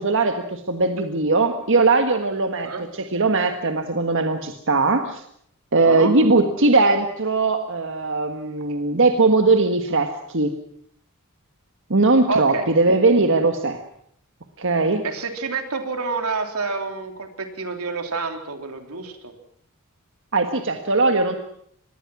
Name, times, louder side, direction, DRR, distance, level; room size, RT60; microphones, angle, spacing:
voice 1, 0.0-2.7 3.0-5.2 5.7-10.6 11.9-13.8 14.6-15.0 20.3-21.4, right 3 dB, 60° right, 6 dB, 1.6 m, -19 dB
voice 2, 12.3-12.6 15.0-19.3, right 4 dB, 85° right, 5 dB, 3.4 m, -28 dB
25.5 x 20.5 x 6.2 m, 0.68 s
head